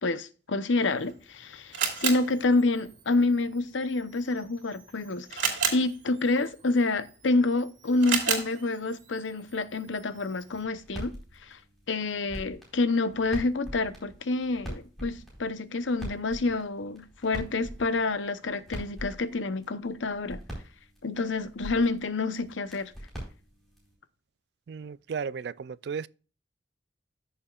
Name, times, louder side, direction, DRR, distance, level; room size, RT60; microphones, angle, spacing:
voice 1, 0.0-11.1 11.4-11.6 11.9-20.4 21.0-22.9, left 3 dB, 90° left, 0.8 m, -28 dB
Camera, 0.8-10.6, right 7 dB, 85° right, 2.7 m, -35 dB
sound 1, 10.5-23.9, equal, ahead, 4.3 m, -44 dB
voice 2, 24.7-26.1, right 6 dB, 60° right, 0.3 m, -34 dB
14.0 x 6.9 x 2.4 m
head